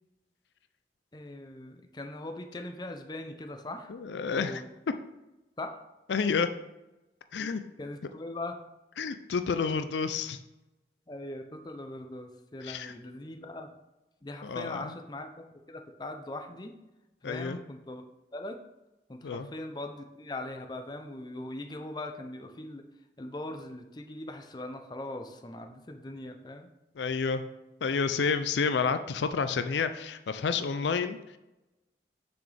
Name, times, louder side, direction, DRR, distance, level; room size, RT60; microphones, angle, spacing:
voice 1, 1.1-3.9 4.3-4.7 5.6-5.7 7.8-8.5 11.1-13.8 14.2-16.8 17.2-18.0 18.3-18.6 19.1-22.8 23.2-26.7, left 2 dB, 25° left, 5 dB, 0.6 m, -40 dB
voice 2, 3.9-4.6 6.1-6.5 7.3-7.6 9.0-10.4 12.6-12.9 14.4-14.9 17.2-17.6 19.2-19.5 27.0-27.4 27.8-31.4, left 5 dB, 85° left, 10 dB, 0.4 m, -30 dB
6.9 x 6.1 x 3.4 m, 0.98 s
head